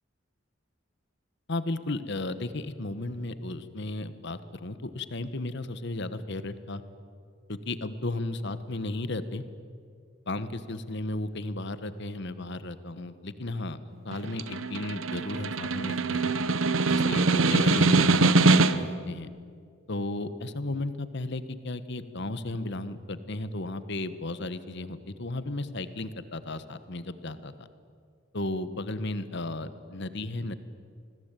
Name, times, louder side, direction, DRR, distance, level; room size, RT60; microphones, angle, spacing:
voice 1, 1.5-6.8 7.5-9.4 10.3-16.3 16.9-19.3 19.9-27.7 28.3-30.5, left 2 dB, 60° left, 13 dB, 1.3 m, -34 dB
Snare drum, 14.1-19.0, right 3 dB, 80° right, 1.0 m, -23 dB
27.0 x 20.5 x 9.1 m, 2.1 s
head